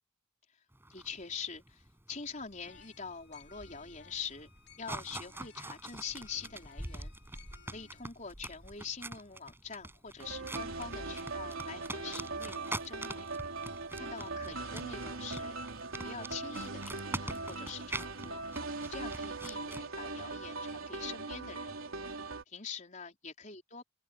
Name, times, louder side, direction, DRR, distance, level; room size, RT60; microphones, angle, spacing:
sound 1, 0.7-19.8, right 2 dB, 10° right, 6.3 m, -44 dB
voice 1, 0.9-4.5 4.8-7.1 7.7-13.2 13.9-15.6 16.0-18.4 18.9-21.8 22.5-23.8, left 5 dB, 35° left, 4.8 m, -44 dB
sound 2, 2.6-8.0, left 5 dB, 55° left, 3.5 m, -59 dB
sound 3, 10.2-22.4, right 3 dB, 75° right, 3.7 m, -40 dB
head